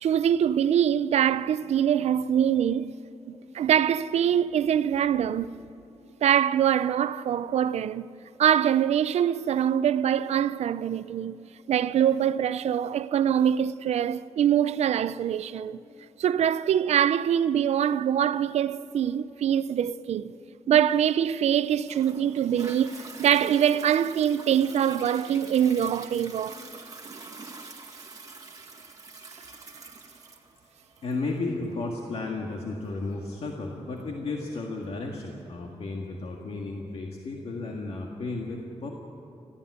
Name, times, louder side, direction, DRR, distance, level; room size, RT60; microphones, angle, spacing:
voice 1, 0.0-2.9 3.3-5.5 6.2-8.1 8.4-11.4 11.7-15.8 16.2-20.4 20.7-26.6, right 9 dB, 90° right, 0.5 m, -24 dB
Toilet flush, 21.8-34.9 35.5-35.6, right 3 dB, 35° right, 2.0 m, -45 dB
voice 2, 31.0-38.9, left 3 dB, 65° left, 1.9 m, -33 dB
21.0 x 15.0 x 9.5 m
wide cardioid pair, 150°, 11 cm